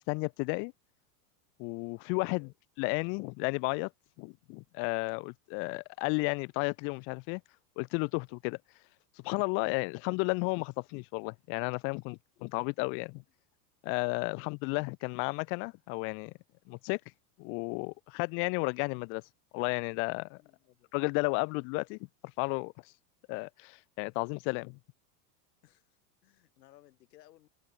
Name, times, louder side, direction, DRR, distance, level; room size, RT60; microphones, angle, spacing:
voice 1, 0.1-0.7 1.6-2.5 2.8-3.9 4.2-7.4 7.8-8.6 9.2-13.2 13.8-16.3 16.7-17.0 17.4-19.2 19.5-20.4 20.9-22.0 22.4-22.7 23.3-24.8, left 33 dB, 25° left, 0.6 m, -33 dB
voice 2, 2.2-2.5 12.4-12.5 14.1-14.4 20.4-20.9 25.6-27.5, left 16 dB, 85° left, 5.7 m, -62 dB
supercardioid pair, 175°, 48 cm